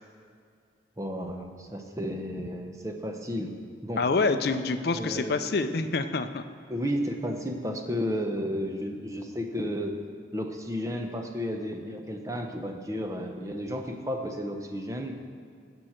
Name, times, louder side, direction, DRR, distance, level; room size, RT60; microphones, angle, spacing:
voice 1, 1.0-3.6 3.8-4.0 4.9-5.4 6.7-9.9 10.3-15.1, equal, 15° right, 4 dB, 0.8 m, -32 dB
voice 2, 4.0-6.4, left 3 dB, 55° left, 9 dB, 0.5 m, -26 dB
16.0 x 6.3 x 4.4 m, 2.2 s
head